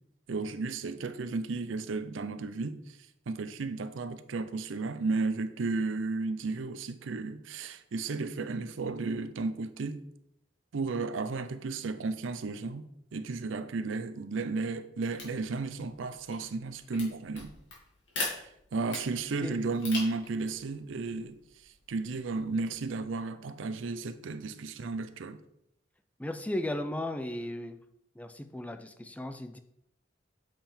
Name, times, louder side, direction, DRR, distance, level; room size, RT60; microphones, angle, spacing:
voice 1, 0.3-2.8 3.3-10.0 10.7-17.5 18.7-21.3 21.9-25.4, right 3 dB, 90° right, 0.5 m, -33 dB
sound 1, 15.1-23.0, left 3 dB, 70° left, 2.1 m, -43 dB
voice 2, 26.2-27.8 28.2-29.6, left 1 dB, 10° left, 0.3 m, -35 dB
7.5 x 3.5 x 4.3 m
head